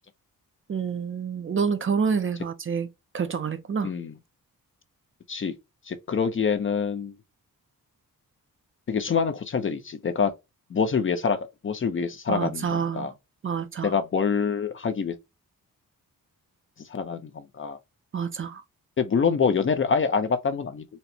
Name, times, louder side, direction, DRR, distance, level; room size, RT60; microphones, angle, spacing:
voice 1, 0.7-2.9 3.1-3.9 12.3-13.1 13.4-13.9 18.1-18.6, right 6 dB, 35° right, 0.4 m, -28 dB
voice 2, 3.8-4.1 5.3-5.5 5.9-7.1 8.9-10.3 10.7-11.4 11.6-13.1 13.8-15.2 16.8-17.8 19.0-20.8, left 5 dB, 35° left, 0.5 m, -26 dB
4.2 x 2.1 x 2.7 m
wide cardioid pair, 135°, 35 cm